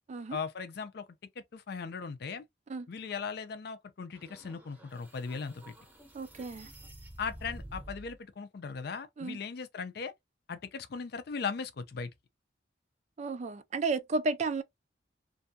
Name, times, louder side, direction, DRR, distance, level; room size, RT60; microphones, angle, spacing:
voice 1, 0.3-1.1 1.4-2.4 2.9-5.8 7.2-10.1 10.5-12.1, left 5 dB, 60° left, 0.4 m, -38 dB
sound 1, 4.1-8.2, right 1 dB, 10° right, 0.7 m, -49 dB
voice 2, 6.1-6.7 9.2-9.4 13.2-14.6, right 3 dB, 40° right, 0.3 m, -33 dB
2.6 x 2.2 x 2.6 m
head